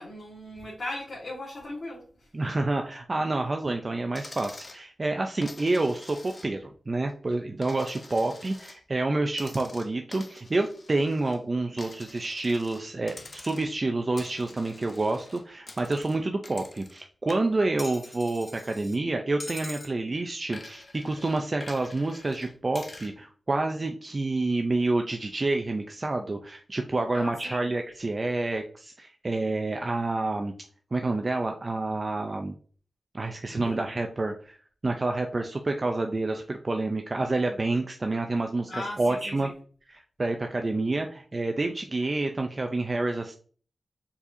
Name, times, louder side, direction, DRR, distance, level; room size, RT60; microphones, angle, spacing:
voice 1, 0.0-2.3 27.1-27.7 33.5-33.8 38.7-39.5, left 1 dB, 60° left, -6 dB, 1.6 m, -38 dB
voice 2, 2.3-30.5 30.9-32.6 33.1-34.6 34.8-39.5 39.9-43.3, right 2 dB, 40° right, 4 dB, 0.5 m, -28 dB
Coin (dropping), 4.1-4.8 5.4-6.7 7.1-8.8 9.3-11.4 11.8-12.8 13.1-13.8 14.2-17.0 17.3-19.0 19.4-19.9 20.5-23.1, left 2 dB, 40° left, 0.7 m, -46 dB
4.7 x 4.1 x 2.6 m, 0.43 s
cardioid pair, 70°, 0 cm